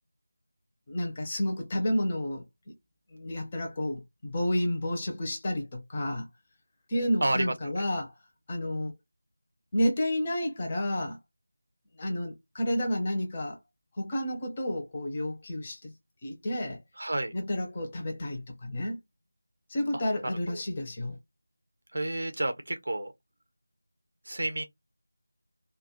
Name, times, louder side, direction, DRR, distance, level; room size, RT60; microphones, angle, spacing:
voice 1, 0.9-2.7 3.1-6.3 6.9-8.1 8.5-8.9 9.7-11.2 12.0-13.6 13.9-15.9 16.2-16.8 17.3-19.0 19.7-21.2, left 1 dB, 25° left, 0.5 m, -30 dB
voice 2, 7.2-7.8 17.0-17.3 21.9-23.1 24.3-24.6, right 1 dB, 55° right, 0.5 m, -30 dB
2.2 x 2.1 x 2.8 m
figure-of-eight pair, 170°, 0 cm